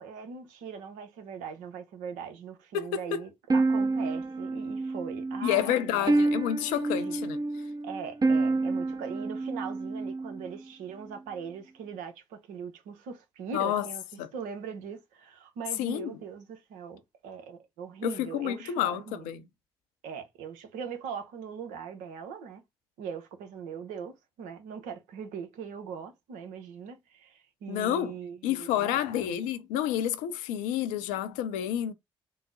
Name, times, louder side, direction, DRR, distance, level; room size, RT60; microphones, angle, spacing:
voice 1, 0.0-6.1 7.1-7.2 7.8-19.3 20.0-22.6 23.0-29.4, right 6 dB, 70° right, 0.8 m, -41 dB
voice 2, 2.7-3.2 5.4-7.4 13.5-13.9 14.2-14.3 15.8-16.2 18.0-19.4 27.7-28.2 28.4-31.9, left 11 dB, 70° left, 0.5 m, -29 dB
sound 1, 3.5-10.6, right 3 dB, 30° right, 0.6 m, -29 dB
3.8 x 2.0 x 3.8 m
figure-of-eight pair, 45°, 14 cm